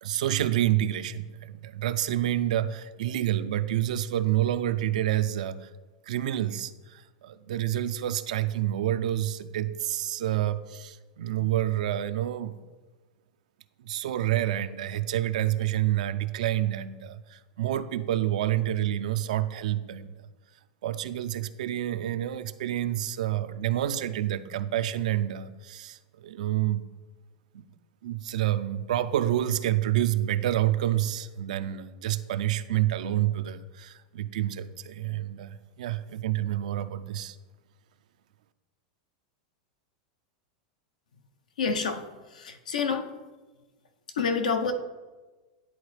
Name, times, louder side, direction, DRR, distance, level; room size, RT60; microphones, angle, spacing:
voice 1, 0.0-5.7 6.0-12.6 13.8-20.1 20.8-26.8 27.5-27.7 28.0-37.4, right 12 dB, 75° right, 12 dB, 0.4 m, -28 dB
voice 2, 41.6-42.0 42.3-43.1 44.2-44.7, left 5 dB, 85° left, 6 dB, 0.7 m, -27 dB
10.0 x 4.0 x 3.2 m, 1.2 s
hypercardioid pair, 110°, 4 cm